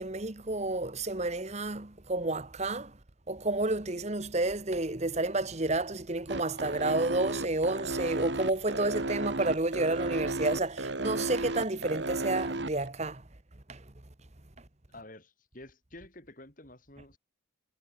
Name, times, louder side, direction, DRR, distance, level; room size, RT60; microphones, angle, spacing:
voice 1, 0.0-2.9 3.3-13.2 13.7-13.8, right 2 dB, 35° right, 1.3 m, -30 dB
sound 1, 6.3-12.9, right 2 dB, 55° right, 1.9 m, -33 dB
voice 2, 14.9-17.2, left 1 dB, 40° left, 3.7 m, -50 dB
head